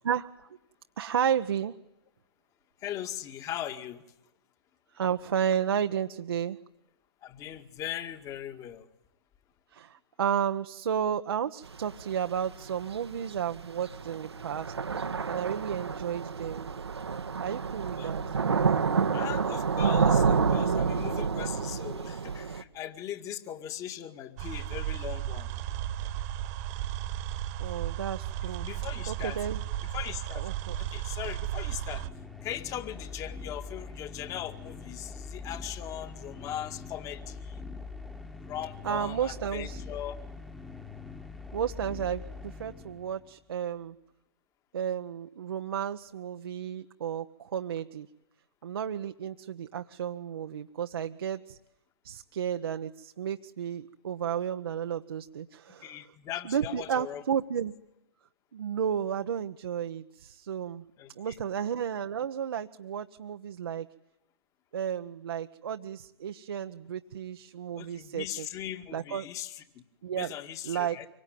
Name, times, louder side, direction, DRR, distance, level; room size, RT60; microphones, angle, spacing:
voice 1, 1.0-1.7 4.9-6.6 9.7-16.7 17.4-18.2 27.6-28.7 29.1-29.6 30.4-30.8 38.8-39.8 41.5-43.9 44.7-48.1 48.6-51.6 52.0-56.0 56.5-57.7 58.5-60.8 61.2-63.9 64.7-68.5 68.9-69.3 70.0-70.3 70.6-71.0, right 8 dB, 60° right, 7 dB, 1.2 m, -32 dB
voice 2, 2.8-4.0 7.2-8.9 18.0-18.1 19.1-25.5 28.6-29.5 29.9-30.4 30.7-32.1 32.4-37.6 38.4-40.2 55.8-57.2 61.0-61.4 67.7-69.8 70.1-71.1, left 11 dB, 25° left, 9 dB, 2.0 m, -39 dB
Thunder / Rain, 11.6-22.6, right 5 dB, 75° right, 1.6 m, -29 dB
sound 1, 24.4-32.1, right 12 dB, 35° right, 1.7 m, -34 dB
sound 2, 31.6-43.4, left 4 dB, 5° left, 1.7 m, -43 dB
25.5 x 23.5 x 9.5 m, 0.88 s
figure-of-eight pair, 120°, 14 cm